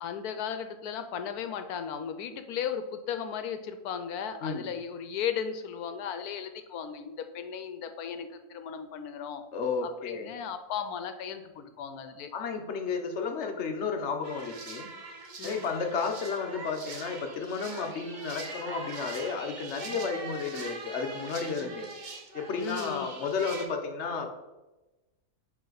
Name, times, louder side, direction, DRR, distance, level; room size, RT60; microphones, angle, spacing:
voice 1, 0.0-9.4 9.8-12.3 15.4-15.7 19.9-20.1 21.6-21.8 22.6-23.1, left 8 dB, 85° left, 9 dB, 1.1 m, -36 dB
voice 2, 4.4-4.7 9.5-10.3 12.3-14.9 15.4-21.9 22.3-24.3, left 5 dB, 55° left, 5 dB, 1.0 m, -32 dB
sound 1, 14.2-23.7, right 3 dB, 40° right, 0.7 m, -42 dB
9.2 x 3.3 x 3.9 m, 1.1 s
omnidirectional pair, 1.6 m